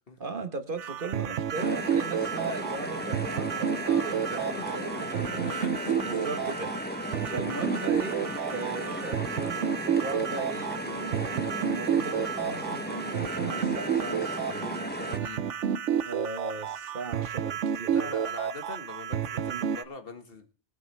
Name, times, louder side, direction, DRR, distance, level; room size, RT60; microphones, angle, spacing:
voice 1, 0.2-5.4 6.0-15.2 16.0-18.1 19.5-19.7, right 4 dB, 45° right, 8 dB, 1.5 m, -38 dB
sound 1, 0.8-19.8, right 8 dB, 75° right, 1.1 m, -30 dB
sound 2, 1.5-15.2, left 1 dB, 10° left, 0.8 m, -36 dB
voice 2, 3.8-6.2 15.2-15.4 17.9-20.5, left 3 dB, 50° left, 7 dB, 2.0 m, -42 dB
22.5 x 8.4 x 3.4 m, 0.35 s
omnidirectional pair, 1.3 m